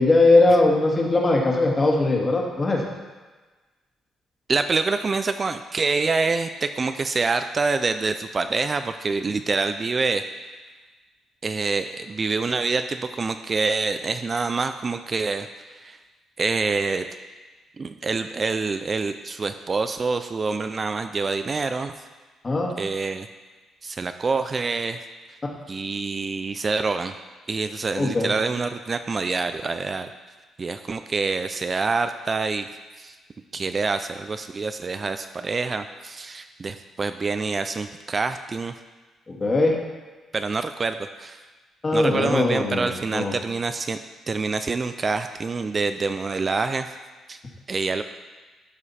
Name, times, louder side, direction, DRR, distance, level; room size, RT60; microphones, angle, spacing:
voice 1, 0.0-2.8 22.4-22.7 28.0-28.3 39.3-39.8 41.8-43.3, left 2 dB, 30° left, 0 dB, 1.7 m, -20 dB
voice 2, 4.5-10.2 11.4-16.0 16.4-17.1 17.8-21.9 22.8-23.3 23.8-25.0 25.7-27.1 27.5-30.1 30.6-32.7 33.0-33.1 33.5-38.7 40.3-41.4 41.9-44.0 44.3-46.9 47.3-47.4 47.7-48.0, right 4 dB, 35° right, 9 dB, 0.4 m, -26 dB
12.0 x 5.0 x 4.2 m, 1.3 s
cardioid pair, 90°, 0 cm